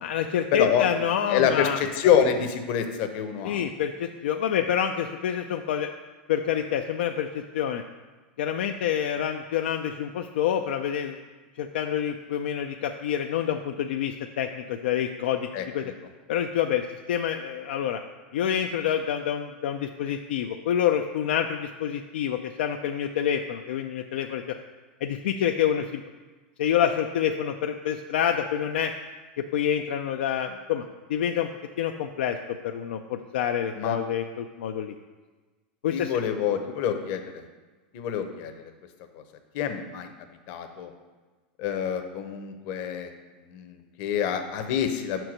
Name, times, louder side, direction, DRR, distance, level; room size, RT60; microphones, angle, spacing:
voice 1, 0.0-1.8 3.4-5.9 6.3-7.8 8.4-11.2 11.6-15.5 15.7-15.9 16.3-18.0 18.3-24.6 25.0-26.0 26.6-28.9 29.4-31.5 31.8-32.4 32.6-35.0 35.8-36.2, left 9 dB, 80° left, 5 dB, 0.4 m, -27 dB
voice 2, 0.5-0.8 1.3-3.6 15.5-15.6 33.7-34.0 35.9-37.4 37.9-38.5 39.5-40.1 40.5-40.9 41.6-43.1 43.5-45.2, left 8 dB, 55° left, 7 dB, 0.8 m, -26 dB
5.8 x 4.5 x 6.4 m, 1.3 s
supercardioid pair, 125°, 6 cm